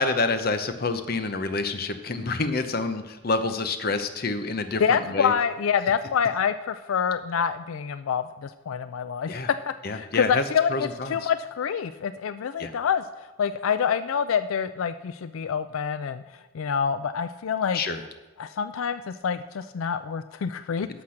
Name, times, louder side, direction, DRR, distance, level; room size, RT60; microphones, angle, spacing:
voice 1, 0.0-5.3 9.3-9.5 9.8-10.4 10.7-11.3 12.6-12.7 17.7-18.0, left 3 dB, 45° left, 9 dB, 0.8 m, -27 dB
voice 2, 4.8-13.0 13.4-16.2 16.5-17.8 18.4-20.9, left 7 dB, 85° left, 12 dB, 0.4 m, -26 dB
11.5 x 6.0 x 6.4 m, 1.2 s
head